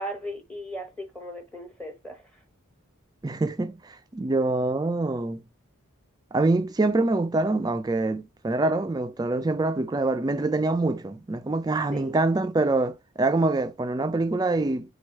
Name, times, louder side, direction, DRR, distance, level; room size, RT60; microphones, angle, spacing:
voice 1, 0.0-2.2 11.9-12.2, equal, 5° left, 0.7 m, -37 dB
voice 2, 3.2-5.4 6.3-14.9, right 2 dB, 20° right, 0.3 m, -25 dB
4.5 x 2.3 x 4.5 m
head